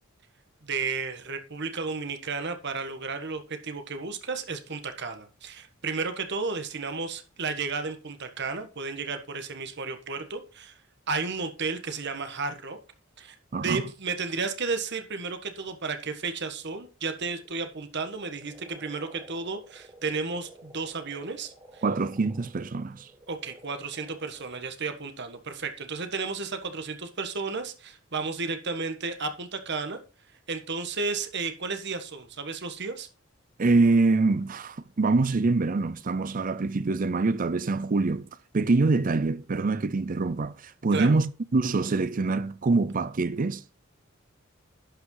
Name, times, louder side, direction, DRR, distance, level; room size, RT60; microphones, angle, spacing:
voice 1, 0.6-10.7 11.1-12.8 13.2-13.4 13.6-21.8 23.3-30.0 30.5-33.1 40.9-41.2, right 4 dB, 55° right, 1.4 m, -33 dB
voice 2, 13.5-13.8 21.8-23.1 33.6-38.3 38.5-43.6, right 3 dB, 40° right, 0.5 m, -25 dB
sound 1, 16.5-24.6, right 1 dB, 20° right, 1.3 m, -53 dB
11.5 x 5.7 x 3.9 m
head